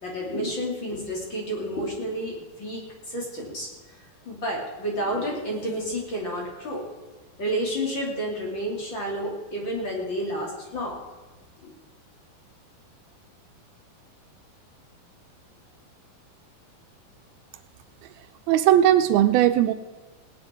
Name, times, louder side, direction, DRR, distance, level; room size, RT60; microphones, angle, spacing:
voice 1, 0.0-3.7 4.3-6.8 7.4-11.0 11.6-11.7, equal, 30° left, -2 dB, 3.4 m, -30 dB
voice 2, 18.5-19.7, right 12 dB, 85° right, 12 dB, 2.4 m, -18 dB
18.5 x 9.9 x 4.6 m, 1.2 s
omnidirectional pair, 4.4 m